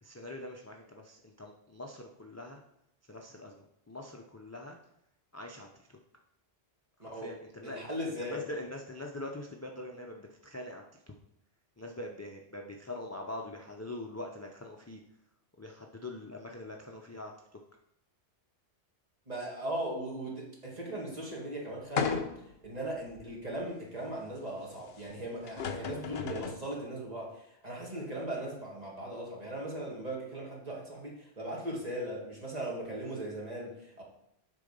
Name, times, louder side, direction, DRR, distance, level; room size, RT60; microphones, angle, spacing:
voice 1, 0.0-2.6 3.1-4.8 5.3-6.0 7.0-7.8 8.2-10.8 11.8-15.0 15.6-17.3, left 1 dB, 20° left, 1 dB, 0.4 m, -43 dB
voice 2, 7.0-7.4 7.6-8.4 19.3-22.3 22.6-34.0, right 1 dB, 35° right, -3 dB, 1.9 m, -38 dB
sound 1, 22.0-22.6 23.2-23.3 25.1-25.2 25.5-26.7, left 6 dB, 65° left, 0.9 m, -34 dB
8.3 x 3.9 x 5.3 m, 0.79 s
omnidirectional pair, 1.1 m